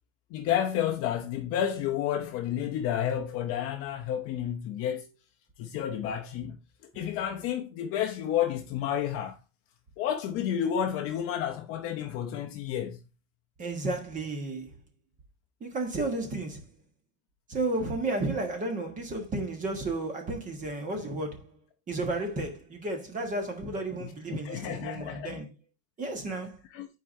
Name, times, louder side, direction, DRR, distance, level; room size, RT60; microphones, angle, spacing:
voice 1, 0.3-5.1 5.6-6.6 6.9-9.4 10.0-13.0 24.3-25.4 26.7-26.9, left 10 dB, 35° left, 0.6 m, -30 dB
voice 2, 13.6-14.7 15.6-16.6 17.5-21.5 21.9-25.5 26.0-26.6, right 2 dB, 20° right, 1.4 m, -32 dB
10.5 x 4.7 x 2.7 m
supercardioid pair, 160°, 40 cm